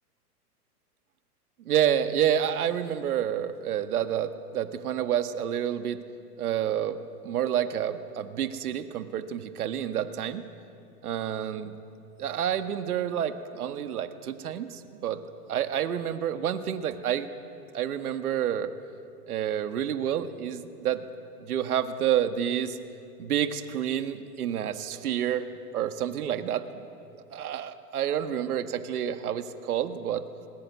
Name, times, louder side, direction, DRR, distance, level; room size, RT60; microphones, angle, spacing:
voice 1, 1.7-6.0 6.4-7.0 7.2-10.4 11.0-11.8 12.2-15.2 15.5-17.3 17.7-18.7 19.3-21.1 21.4-22.8 23.2-26.9 27.1-30.2, right 10 dB, 70° right, 9 dB, 1.7 m, -29 dB
21.0 x 20.0 x 9.5 m, 2.5 s
hypercardioid pair, 125°, 46 cm